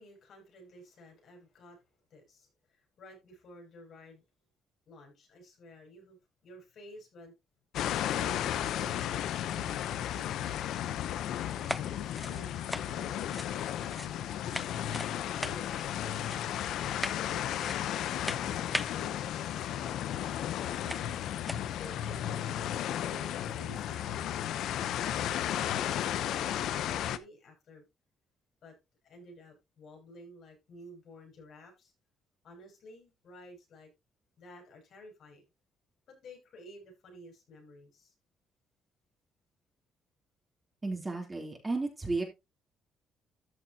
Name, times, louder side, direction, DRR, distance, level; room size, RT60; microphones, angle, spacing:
voice 1, 0.0-1.8 2.1-4.2 4.9-6.2 6.4-7.3 7.8-10.7 11.4-14.7 15.2-16.3 16.9-21.4 21.7-22.5 23.0-24.4 24.7-27.8 28.6-28.8 29.0-31.9 32.4-33.9 34.4-35.4 36.1-38.1, equal, 65° left, 7.0 m, -53 dB
sound 1, 7.7-27.2, left 11 dB, 80° left, 0.8 m, -34 dB
sound 2, 11.6-14.2 14.5-15.1 15.4-15.9 16.3-16.6 17.0-17.3 17.6-18.0 18.2-19.0 20.1-20.2 20.9-21.1 21.4-21.7, left 1 dB, 5° left, 0.5 m, -39 dB
voice 2, 40.8-42.2, right 3 dB, 20° right, 3.5 m, -33 dB
13.5 x 6.7 x 2.9 m
cardioid pair, 90°, 0 cm